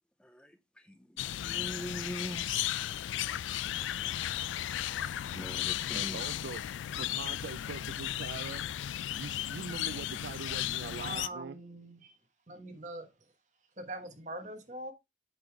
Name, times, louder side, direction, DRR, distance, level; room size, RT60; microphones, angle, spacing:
voice 1, 0.2-2.8 5.3-6.2, equal, 5° left, 0.4 m, -43 dB
sound 1, 1.2-11.3, left 12 dB, 85° left, 0.3 m, -35 dB
voice 2, 5.9-6.6 6.9-8.6 9.2-11.6, right 5 dB, 65° right, 0.4 m, -43 dB
voice 3, 11.0-12.2 12.5-13.1 13.8-14.9, right 1 dB, 40° right, 1.3 m, -42 dB
8.0 x 3.9 x 4.6 m
head